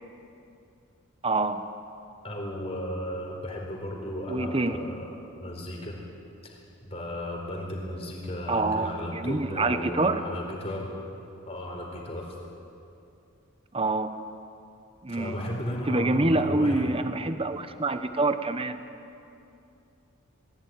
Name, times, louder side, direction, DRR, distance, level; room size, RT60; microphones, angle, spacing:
voice 1, 1.2-1.6 4.3-4.8 8.5-10.2 13.7-14.1 15.0-15.4 15.9-18.8, right 2 dB, 25° right, 10 dB, 0.9 m, -26 dB
voice 2, 2.2-5.1 5.4-6.0 6.4-10.9 11.5-12.3 15.1-16.9, left 1 dB, 30° left, -1 dB, 4.3 m, -35 dB
20.0 x 16.0 x 9.5 m, 2.6 s
head